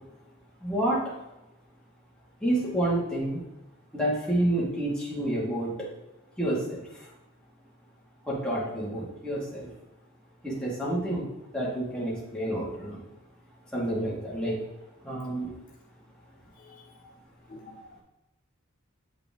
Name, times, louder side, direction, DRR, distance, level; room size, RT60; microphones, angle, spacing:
voice 1, 0.6-1.1 2.4-3.4 3.9-5.9 6.4-7.1 8.2-9.7 10.4-13.1 13.7-14.6 15.0-15.5, right 1 dB, 5° left, -6 dB, 2.1 m, -29 dB
voice 2, 16.5-17.2 17.5-18.0, left 2 dB, 40° left, 2 dB, 0.5 m, -50 dB
8.1 x 5.1 x 3.7 m, 0.97 s
head